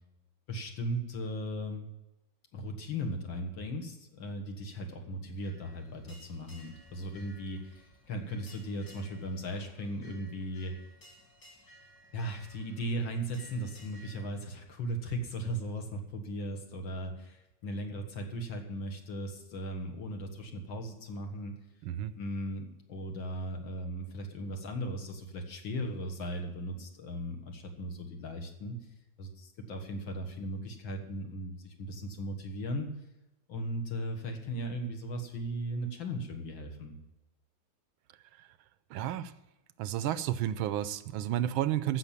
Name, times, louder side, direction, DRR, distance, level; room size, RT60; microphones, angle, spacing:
voice 1, 0.5-1.9 2.5-10.7 12.1-21.6 22.1-28.8 29.2-32.9 33.5-37.0, equal, 65° left, 3 dB, 2.2 m, -37 dB
sound 1, 5.4-14.3, equal, 50° left, 3.1 m, -57 dB
voice 2, 21.8-22.1 38.4-38.5 38.9-39.3 39.8-42.0, right 12 dB, 80° right, 14 dB, 1.3 m, -31 dB
15.0 x 6.1 x 7.2 m, 0.98 s
omnidirectional pair, 2.3 m